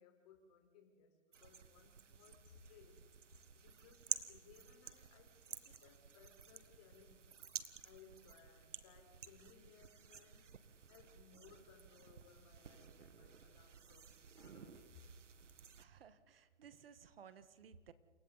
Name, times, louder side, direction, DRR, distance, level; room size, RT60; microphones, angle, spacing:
voice 1, 0.0-7.3 7.8-10.5 10.9-15.1, left 6 dB, 30° left, 3 dB, 4.6 m, -64 dB
sound 1, 1.3-15.9, right 6 dB, 90° right, 1.7 m, -52 dB
voice 2, 15.8-17.9, right 7 dB, 50° right, 12 dB, 1.6 m, -59 dB
29.0 x 29.0 x 4.1 m, 1.4 s
hypercardioid pair, 160°, 36 cm